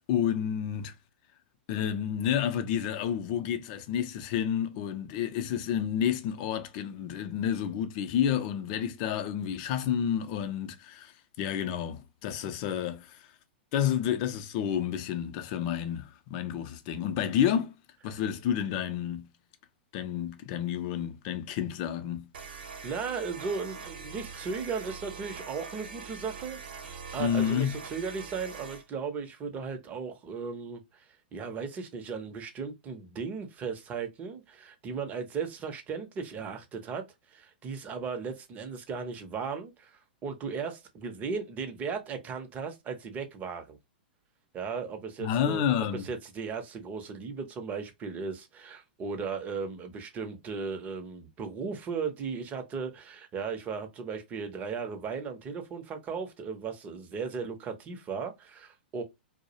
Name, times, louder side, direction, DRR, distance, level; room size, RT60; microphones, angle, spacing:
voice 1, 0.1-0.9 1.7-11.1 11.4-13.3 13.7-17.7 18.0-19.3 19.9-22.3 27.2-27.8 45.2-46.1, left 9 dB, 45° left, 0.5 m, -30 dB
sound 1, 22.3-28.8, right 5 dB, 70° right, 0.8 m, -43 dB
voice 2, 22.8-31.0 31.3-37.0 37.3-43.8 44.5-59.0, right 5 dB, 25° right, 0.6 m, -36 dB
2.3 x 2.0 x 2.7 m
hypercardioid pair, 110°, 6 cm